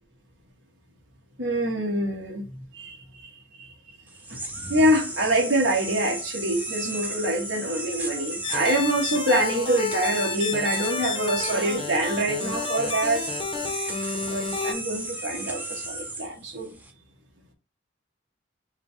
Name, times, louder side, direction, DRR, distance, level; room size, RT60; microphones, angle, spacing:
voice 1, 1.4-2.5 2.7-3.0 3.6-3.7 4.3-4.4 4.7-13.3 14.3-16.8, right 1 dB, 75° right, 1.4 m, -25 dB
sound 1, 4.1-16.9, right 2 dB, 10° right, 0.5 m, -34 dB
sound 2, 8.4-14.7, left 5 dB, 25° left, 0.7 m, -31 dB
5.4 x 2.3 x 3.6 m
head